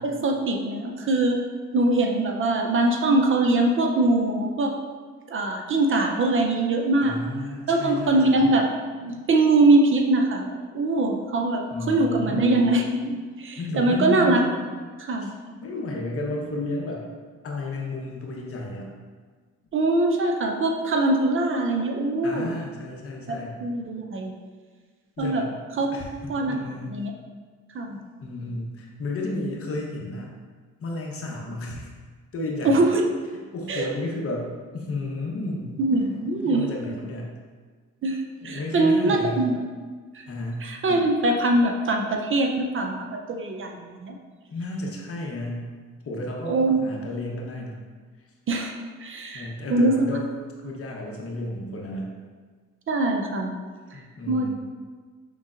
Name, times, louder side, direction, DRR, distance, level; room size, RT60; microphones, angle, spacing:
voice 1, 0.0-1.4 1.7-4.7 5.3-7.1 7.7-8.6 9.0-14.7 15.0-15.3 19.7-22.5 23.3-24.3 25.2-25.4 25.8-26.0 26.3-26.5 26.9-27.1 27.7-28.0 32.6-33.0 33.7-33.9 35.8-36.7 38.0-39.6 40.1-40.2 40.6-44.2 46.5-46.8 48.5-48.7 49.0-49.9 52.9-53.5 54.3-54.5, right 2 dB, 45° right, 2 dB, 0.5 m, -22 dB
voice 2, 7.0-8.5 11.7-12.6 13.6-14.1 15.2-15.3 15.6-17.1 17.4-18.9 22.2-23.6 25.2-25.6 25.9-26.9 28.2-30.4 30.8-31.9 32.3-32.8 33.5-35.8 36.4-37.3 38.4-39.5 40.3-40.6 44.5-45.7 46.0-47.8 49.3-50.3 50.6-52.1 53.9-54.5, left 2 dB, 50° left, -1 dB, 0.9 m, -32 dB
5.4 x 3.6 x 2.5 m, 1.5 s
cardioid pair, 90°, 30 cm